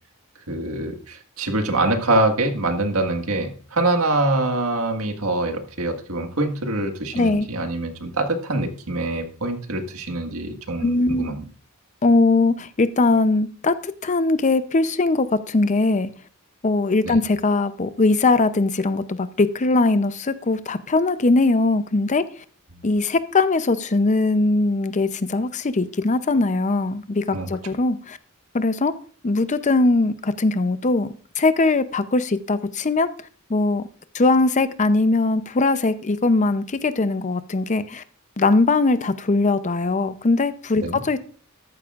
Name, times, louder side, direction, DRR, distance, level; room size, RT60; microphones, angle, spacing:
voice 1, 0.5-11.4 17.0-17.2 27.3-27.5 40.8-41.0, right 2 dB, 90° right, 5 dB, 1.7 m, -24 dB
voice 2, 7.1-7.5 10.8-11.4 12.0-16.1 16.6-22.2 22.8-28.2 28.5-28.9 29.2-33.1 33.5-33.9 34.1-38.0 38.4-41.2, left 3 dB, 35° left, 13 dB, 0.6 m, -20 dB
13.5 x 11.5 x 2.4 m, 0.41 s
head